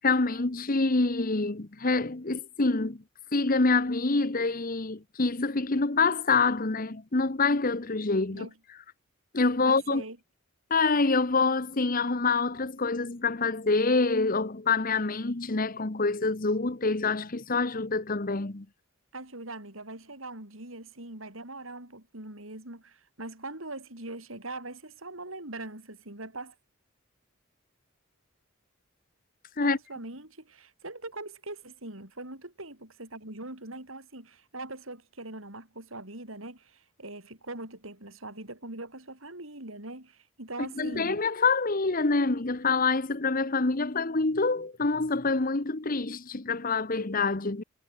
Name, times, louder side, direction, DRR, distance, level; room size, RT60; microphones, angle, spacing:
voice 1, 0.0-3.0 3.3-8.5 9.3-10.0 10.7-18.7 29.6-29.8 40.6-47.6, left 3 dB, 40° left, 1.1 m, -26 dB
voice 2, 9.6-10.2 19.1-26.5 29.6-41.2, right 2 dB, 75° right, 7.0 m, -42 dB
head